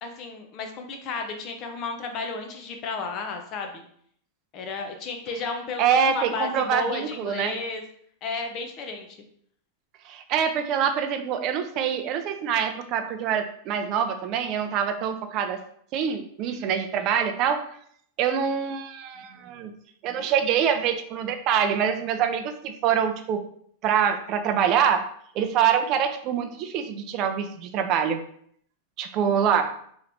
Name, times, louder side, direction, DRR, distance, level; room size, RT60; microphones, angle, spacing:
voice 1, 0.0-3.8 4.5-7.8 8.2-9.2, left 4 dB, 35° left, 4 dB, 0.6 m, -33 dB
voice 2, 5.8-7.6 10.1-15.6 15.9-17.6 18.2-19.7 20.0-23.4 23.8-25.0 25.3-28.2 29.0-29.7, right 8 dB, 40° right, 7 dB, 0.5 m, -25 dB
3.7 x 3.0 x 3.3 m, 0.65 s
supercardioid pair, 150°, 0 cm